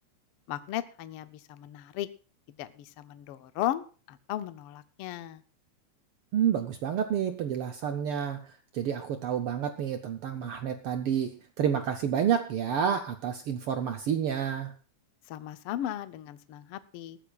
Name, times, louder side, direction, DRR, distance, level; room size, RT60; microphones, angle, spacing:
voice 1, 0.5-2.1 2.6-5.4 15.3-17.2, left 12 dB, 80° left, 11 dB, 1.3 m, -36 dB
voice 2, 6.3-14.7, right 8 dB, 75° right, 6 dB, 1.3 m, -29 dB
20.5 x 14.0 x 2.4 m, 0.37 s
omnidirectional pair, 3.4 m